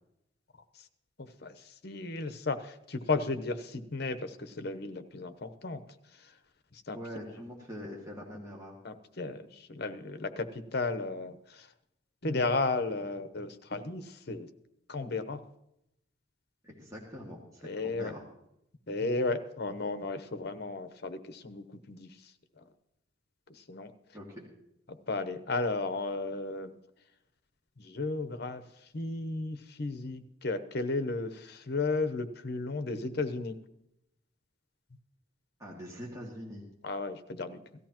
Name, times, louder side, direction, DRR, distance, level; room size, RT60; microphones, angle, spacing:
voice 1, 1.4-5.8 6.9-7.0 8.8-11.7 12.2-14.5 14.9-15.4 17.6-18.1 18.9-22.1 22.6-22.7 23.5-23.9 24.9-26.7 27.8-28.6 28.9-33.6 36.8-37.6, left 3 dB, 55° left, 9 dB, 0.9 m, -34 dB
voice 2, 6.9-8.8 16.6-18.2 24.1-24.5 35.6-36.7, equal, 15° right, -4 dB, 2.1 m, -43 dB
17.5 x 13.5 x 3.0 m, 0.81 s
head